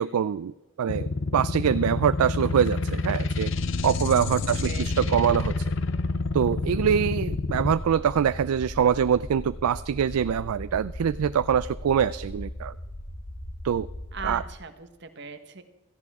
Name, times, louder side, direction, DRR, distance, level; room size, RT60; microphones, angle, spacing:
voice 1, 0.0-3.5 3.8-5.7 6.3-12.7 13.6-13.9 14.2-14.4, right 8 dB, 85° right, 14 dB, 0.4 m, -24 dB
sound 1, 0.9-7.7, left 3 dB, 60° left, 0.6 m, -28 dB
sound 2, 3.5-14.5, left 1 dB, 45° left, 1.7 m, -38 dB
voice 2, 4.6-5.2 14.1-15.6, right 5 dB, 50° right, 8 dB, 1.2 m, -39 dB
16.5 x 14.5 x 3.6 m, 1.1 s
head